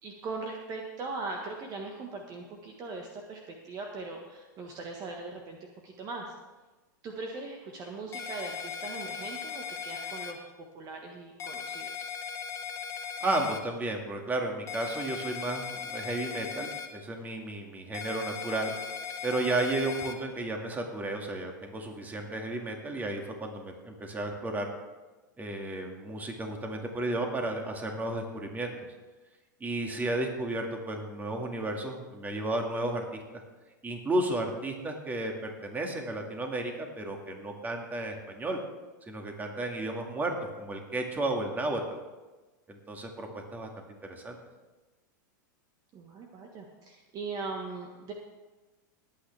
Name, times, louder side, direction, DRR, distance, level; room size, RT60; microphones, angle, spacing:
voice 1, 0.0-6.3 7.0-12.1 45.9-48.1, right 3 dB, 35° right, 2 dB, 1.5 m, -40 dB
sound 1, 8.1-10.3 11.4-13.6 14.7-16.9 17.9-20.1, left 7 dB, 30° left, 1.4 m, -38 dB
voice 2, 13.2-18.7 19.2-24.7 25.4-28.7 29.6-33.4 33.8-38.6 39.1-42.0 42.7-43.7 44.1-44.4, right 2 dB, 15° right, 2 dB, 2.1 m, -33 dB
20.0 x 8.8 x 3.4 m, 1.2 s
hypercardioid pair, 120°, 11 cm